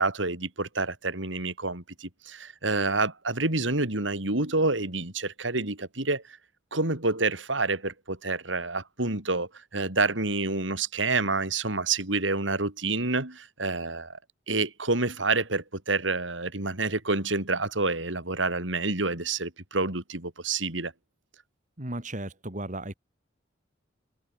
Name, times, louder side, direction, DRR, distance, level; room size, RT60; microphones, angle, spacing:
voice 1, 0.0-6.2 6.7-14.2 14.5-20.9, right 3 dB, 75° right, 4.5 m, -28 dB
voice 2, 21.8-22.9, right 1 dB, 40° right, 3.5 m, -35 dB
head